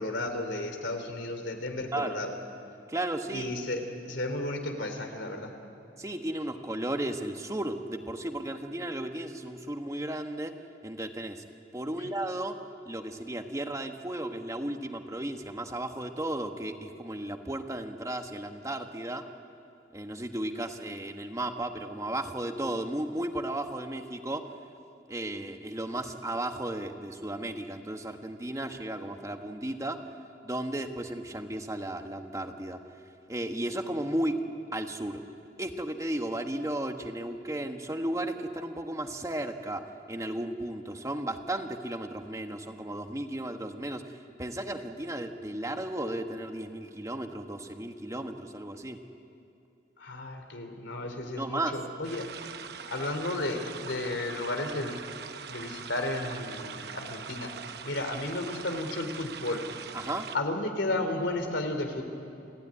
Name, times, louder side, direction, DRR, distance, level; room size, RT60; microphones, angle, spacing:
voice 1, 0.0-2.3 3.3-5.5 12.0-12.1 50.0-52.3 52.9-55.0 55.5-57.5 57.8-59.6 60.3-62.0, left 2 dB, 85° left, 6 dB, 3.0 m, -33 dB
voice 2, 2.9-3.4 6.0-10.5 10.8-11.4 11.7-12.6 12.8-19.3 19.9-24.5 25.1-30.0 30.4-32.8 33.3-34.4 34.7-35.2 35.6-39.8 40.1-49.0 51.4-51.8 59.9-60.3, right 1 dB, 15° right, 5 dB, 1.2 m, -34 dB
sound 1, 52.0-60.4, right 6 dB, 60° right, 0.9 m, -42 dB
29.0 x 15.5 x 9.7 m, 2.7 s
head